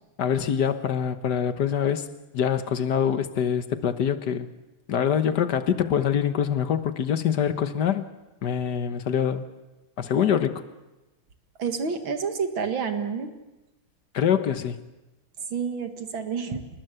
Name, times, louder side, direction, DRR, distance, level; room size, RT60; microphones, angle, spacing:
voice 1, 0.2-2.1 2.3-4.5 4.9-8.0 8.4-9.5 10.0-10.6 14.1-14.8, left 8 dB, 60° left, 1.7 m, -24 dB
voice 2, 11.6-13.3 15.4-16.7, right 6 dB, 75° right, 2.7 m, -29 dB
27.0 x 20.5 x 8.0 m
omnidirectional pair, 2.2 m